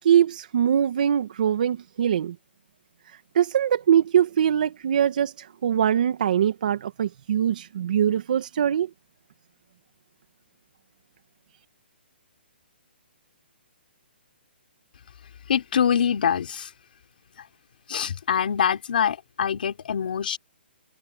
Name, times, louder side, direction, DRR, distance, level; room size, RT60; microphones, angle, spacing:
voice 1, 0.0-2.4 3.3-8.9, right 9 dB, 45° right, 1.9 m, -22 dB
voice 2, 15.5-16.7 17.9-20.4, left 8 dB, 55° left, 3.6 m, -24 dB
hypercardioid pair, 170°, 6 cm